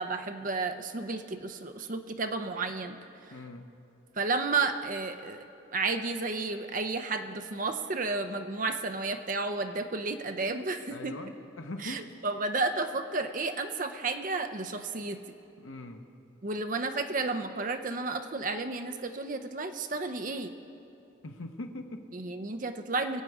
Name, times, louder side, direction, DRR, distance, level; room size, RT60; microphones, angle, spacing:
voice 1, 0.0-3.0 4.2-5.4 5.7-11.1 11.8-15.2 16.4-20.5 22.1-23.2, right 3 dB, 40° right, 7 dB, 0.6 m, -32 dB
voice 2, 3.3-3.7 10.9-12.0 15.6-16.1 21.2-22.0, left 2 dB, 85° left, 6 dB, 0.9 m, -41 dB
21.5 x 8.1 x 4.9 m, 2.7 s
head